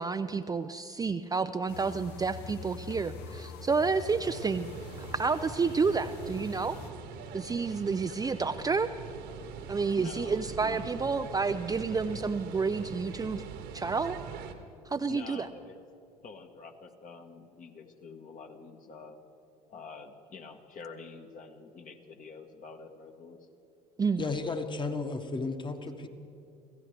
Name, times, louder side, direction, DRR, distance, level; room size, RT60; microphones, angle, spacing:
voice 1, 0.0-4.7 5.0-6.8 7.3-8.9 9.7-13.4 13.7-14.2 14.9-15.5 24.0-24.2, right 4 dB, 20° right, 9 dB, 0.5 m, -30 dB
sound 1, 1.7-6.9, left 5 dB, 60° left, 1.1 m, -45 dB
sound 2, 4.2-14.5, right 6 dB, 60° right, 1.4 m, -43 dB
voice 2, 10.0-10.9 14.9-15.8 16.2-19.2 19.7-23.5, left 4 dB, 40° left, 4 dB, 1.6 m, -47 dB
voice 3, 24.2-26.1, left 3 dB, 25° left, 6 dB, 1.5 m, -33 dB
25.0 x 16.0 x 3.4 m, 2.8 s
hypercardioid pair, 65°, 20 cm